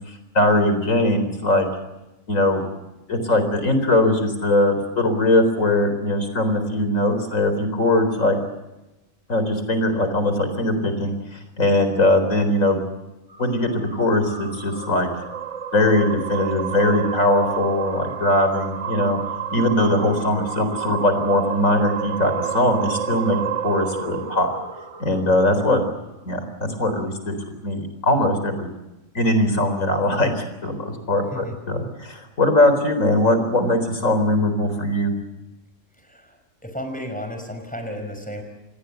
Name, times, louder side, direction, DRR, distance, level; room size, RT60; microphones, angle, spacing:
voice 1, 0.3-1.7 2.3-2.6 3.1-8.4 9.3-12.8 13.4-15.1 15.7-19.2 19.5-24.5 25.0-25.8 26.2-27.4 27.6-28.7 29.1-35.1, left 1 dB, 90° left, 9 dB, 4.5 m, -20 dB
sound 1, 13.3-25.8, right 9 dB, 65° right, 1.7 m, -30 dB
voice 2, 36.0-36.4 36.6-38.4, equal, 5° left, 5 dB, 5.2 m, -33 dB
28.0 x 20.5 x 8.1 m, 1.0 s
omnidirectional pair, 1.3 m